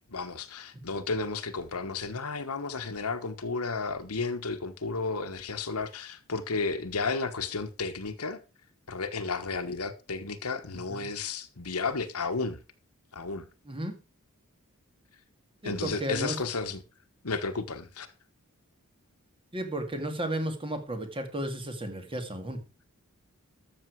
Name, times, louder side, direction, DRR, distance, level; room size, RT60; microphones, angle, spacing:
voice 1, 0.1-8.4 8.9-12.6 13.1-13.5 15.6-16.8 17.2-18.1, left 4 dB, 85° left, 1.3 m, -33 dB
voice 2, 15.6-16.4 19.5-22.6, right 1 dB, 25° right, 2.2 m, -33 dB
13.0 x 7.0 x 4.7 m
head